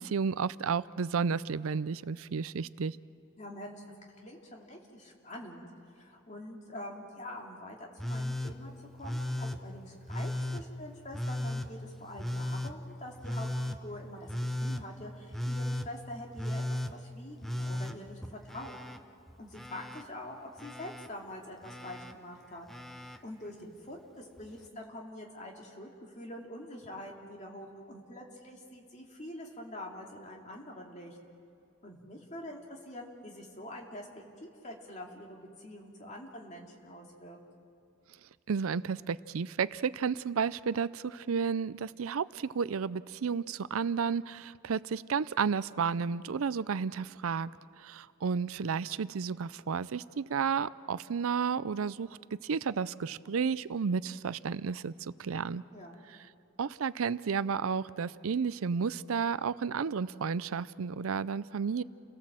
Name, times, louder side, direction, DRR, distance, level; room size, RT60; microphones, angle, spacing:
voice 1, 0.0-3.0 38.5-47.5 47.8-55.6 56.6-61.8, right 6 dB, 80° right, 17 dB, 0.5 m, -32 dB
voice 2, 3.4-3.8 4.2-5.7 5.9-18.8 19.4-22.7 23.2-31.2 31.8-37.4 55.7-56.0, left 1 dB, 35° left, 0 dB, 2.7 m, -45 dB
Telephone, 8.0-8.5 9.0-9.6 10.1-10.6 11.1-11.7 12.2-12.7 13.2-13.8 14.3-14.8 15.3-15.9 16.4-16.9 17.4-19.0 19.3-20.0 20.6-21.1 21.6-22.1 22.7-23.2 24.4-24.5, left 1 dB, ahead, 0.6 m, -35 dB
29.5 x 18.0 x 7.5 m, 2.7 s
head